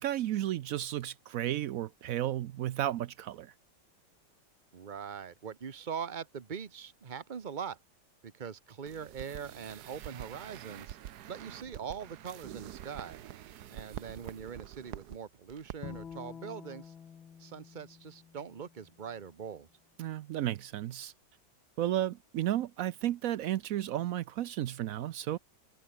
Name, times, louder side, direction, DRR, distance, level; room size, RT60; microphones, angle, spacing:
voice 1, 0.0-3.5 20.0-21.1 21.8-25.4, right 12 dB, 90° right, 0.7 m, -33 dB
voice 2, 4.7-7.8 8.2-11.0 11.3-13.2 13.7-16.9 17.4-19.7, right 7 dB, 30° right, 0.9 m, -42 dB
sound 1, 8.9-15.2 15.5-15.8 16.0-16.2, right 12 dB, 65° right, 1.2 m, -46 dB
Bowed string instrument, 15.8-19.1, left 7 dB, 80° left, 2.7 m, -48 dB
omnidirectional pair, 2.2 m